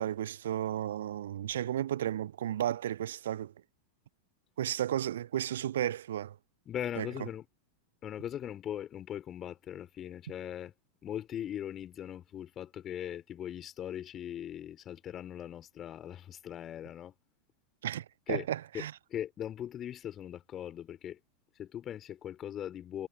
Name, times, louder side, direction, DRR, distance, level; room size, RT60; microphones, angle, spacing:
voice 1, 0.0-3.5 4.6-6.4 7.0-7.1 17.8-18.9, right 11 dB, 60° right, 0.5 m, -33 dB
voice 2, 6.7-7.5 8.0-10.7 11.0-17.1 18.3-18.5 18.7-21.2 21.5-23.1, left 10 dB, 30° left, 3.9 m, -40 dB
figure-of-eight pair, 90°, 0 cm